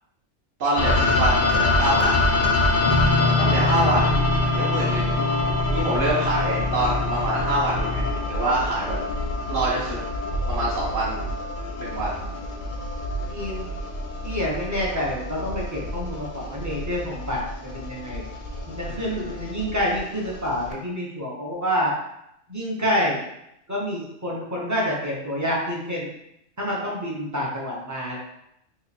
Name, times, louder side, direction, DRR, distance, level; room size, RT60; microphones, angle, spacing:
voice 1, 0.6-2.2 3.4-4.1 4.5-5.1 5.7-9.0 9.5-10.0 10.5-11.2 11.8-12.2 18.9-19.4, right 1 dB, 50° right, -7 dB, 0.8 m, -26 dB
sound 1, 0.8-20.7, left 2 dB, 55° left, 0.5 m, -26 dB
Guitar, 2.8-8.1, left 3 dB, 85° left, 1.0 m, -26 dB
voice 2, 13.3-13.7 14.2-18.2 18.7-21.9 22.5-23.2 23.7-26.1 26.6-28.2, equal, 20° right, -4 dB, 0.5 m, -27 dB
2.9 x 2.4 x 4.1 m, 0.80 s
omnidirectional pair, 1.4 m